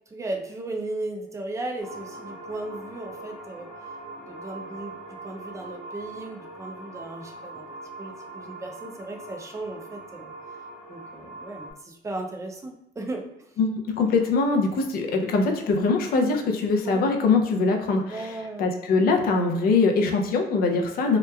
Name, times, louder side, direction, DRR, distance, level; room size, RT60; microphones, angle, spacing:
voice 1, 0.1-3.7 4.2-4.9 5.2-7.6 8.0-10.3 10.9-13.6 16.8-17.0 18.1-18.7, right 2 dB, 20° right, 3 dB, 0.4 m, -36 dB
sound 1, 1.8-11.7, right 2 dB, 5° left, 0.9 m, -42 dB
voice 2, 13.6-18.3 18.6-21.2, left 4 dB, 60° left, 3 dB, 0.5 m, -22 dB
2.9 x 2.1 x 2.3 m, 0.90 s
cardioid pair, 110°, 17 cm